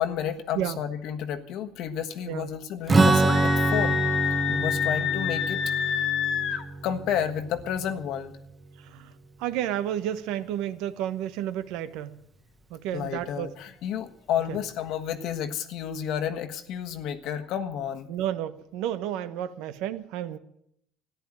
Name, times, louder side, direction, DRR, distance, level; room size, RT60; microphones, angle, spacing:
voice 1, 0.0-4.1 4.5-5.6 5.9-6.0 6.8-8.3 12.9-18.1, left 9 dB, 65° left, 7 dB, 1.4 m, -31 dB
Strum, 2.9-8.5, right 3 dB, 20° right, 1.2 m, -25 dB
Screaming, 3.3-6.6, left 9 dB, 50° left, 1.6 m, -28 dB
voice 2, 9.4-12.2 12.7-13.5 14.5-14.6 18.1-20.4, right 11 dB, 80° right, 12 dB, 1.1 m, -31 dB
14.0 x 10.5 x 8.7 m, 0.73 s
cardioid pair, 120°, 0 cm